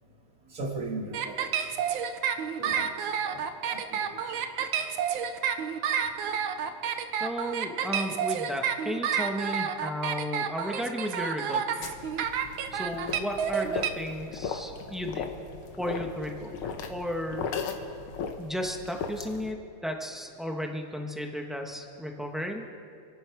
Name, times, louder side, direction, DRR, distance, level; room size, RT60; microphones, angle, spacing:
voice 1, 0.5-1.7 2.6-2.9 3.2-4.4, right 2 dB, 40° right, 0 dB, 2.4 m, -38 dB
sound 1, 1.1-13.9, right 8 dB, 75° right, 1.6 m, -29 dB
voice 2, 7.2-11.9 12.7-15.3 15.8-17.5 18.4-22.7, equal, ahead, 2 dB, 0.7 m, -34 dB
sound 2, 11.8-19.5, left 6 dB, 80° left, 1.9 m, -37 dB
27.0 x 11.0 x 4.7 m, 2.4 s
omnidirectional pair, 2.3 m